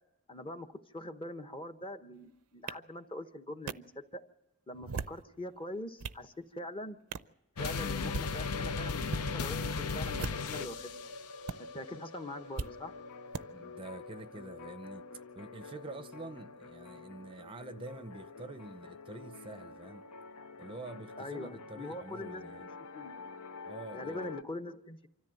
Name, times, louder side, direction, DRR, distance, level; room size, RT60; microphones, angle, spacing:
voice 1, 0.3-4.2 4.7-7.0 7.6-11.0 11.6-12.9 21.2-22.7 22.9-23.2 23.9-25.1, left 1 dB, 25° left, 7 dB, 0.9 m, -43 dB
sound 1, 2.7-2.8 3.7-3.8 4.7-5.2 5.7-6.2 7.1-7.3 8.0-8.3 9.0-9.3 10.1-10.6 11.5-11.6 12.6-12.7 13.3-13.4, right 5 dB, 90° right, 0.6 m, -39 dB
sound 2, 7.6-24.4, left 4 dB, 80° left, 0.7 m, -41 dB
voice 2, 13.5-15.1 15.3-20.0 20.6-22.7 23.6-24.3, right 2 dB, 25° right, 11 dB, 0.6 m, -47 dB
25.5 x 13.5 x 7.7 m, 1.0 s
head